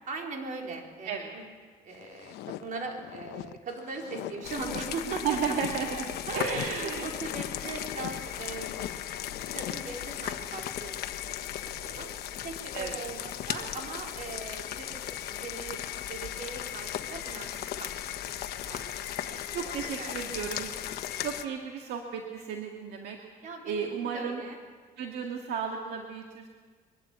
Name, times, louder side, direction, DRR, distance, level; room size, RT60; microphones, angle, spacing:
voice 1, 0.1-1.4 1.8-5.6 6.3-9.1 9.4-11.1 11.8-12.1 12.4-17.5 17.8-17.9 18.7-18.9 19.2-20.2 23.4-24.6, right 4 dB, 50° right, 1 dB, 4.1 m, -40 dB
sound 1, 1.9-10.5, left 13 dB, 85° left, 0.8 m, -42 dB
sound 2, 4.4-21.5, left 11 dB, 70° left, 1.1 m, -37 dB
voice 2, 5.1-7.1 12.7-13.0 18.7-18.9 19.3-20.7 21.2-23.2 23.7-24.4 25.0-26.5, right 6 dB, 75° right, 2 dB, 1.9 m, -34 dB
23.5 x 12.0 x 9.3 m, 1.5 s
cardioid pair, 110°, 17 cm